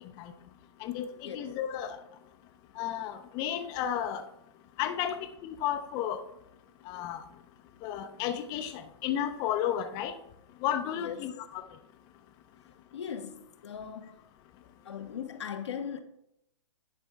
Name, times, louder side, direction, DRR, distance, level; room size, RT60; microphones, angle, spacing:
voice 1, 0.8-2.0 2.8-4.2 4.8-6.2 6.9-7.2 7.8-10.2 10.6-11.6, left 10 dB, 30° left, 0.4 m, -33 dB
voice 2, 10.9-11.3 12.9-14.1 14.8-16.0, left 8 dB, 70° left, 0.8 m, -39 dB
10.5 x 4.2 x 3.4 m
hypercardioid pair, 125°, 15 cm